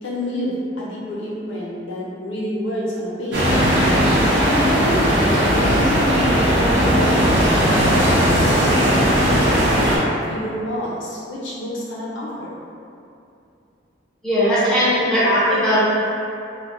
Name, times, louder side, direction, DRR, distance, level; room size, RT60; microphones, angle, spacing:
voice 1, 0.0-3.7 4.4-5.3 5.7-8.4 8.8-12.5, left 1 dB, 90° left, -6 dB, 0.7 m, -28 dB
sound 1, 3.3-10.0, equal, 70° right, 0.7 m, -17 dB
voice 2, 14.2-15.8, equal, 5° left, -12 dB, 0.6 m, -18 dB
2.2 x 2.1 x 3.7 m, 2.6 s
head